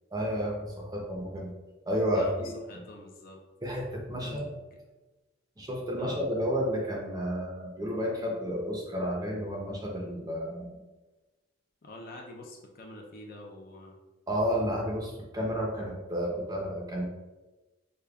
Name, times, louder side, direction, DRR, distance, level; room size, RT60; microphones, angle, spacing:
voice 1, 0.1-1.5 1.9-2.8 3.6-4.5 5.6-10.8 14.3-17.1, equal, 20° right, -2 dB, 0.5 m, -31 dB
voice 2, 2.1-3.4 4.2-4.4 6.0-6.2 11.8-14.0, left 1 dB, 40° left, 1 dB, 0.4 m, -46 dB
4.9 x 2.1 x 2.2 m, 1.1 s
head